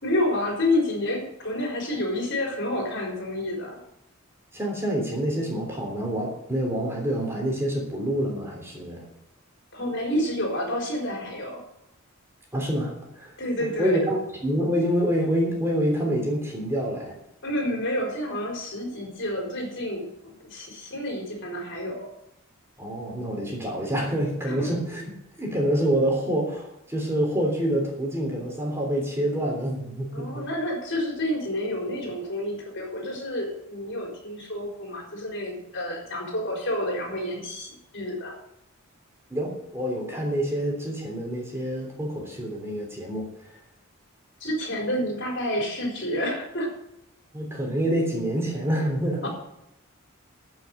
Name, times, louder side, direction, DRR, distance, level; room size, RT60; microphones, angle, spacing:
voice 1, 0.0-3.8 9.7-11.6 13.4-14.0 17.4-22.1 24.4-24.7 30.1-38.4 44.4-46.7 49.2-49.3, left 1 dB, 55° left, 1 dB, 4.4 m, -29 dB
voice 2, 4.5-9.0 12.5-14.2 14.4-17.2 22.8-25.0 25.4-30.5 39.3-43.3 47.3-49.3, equal, 10° right, -1 dB, 3.3 m, -27 dB
14.5 x 6.4 x 7.7 m, 0.82 s
head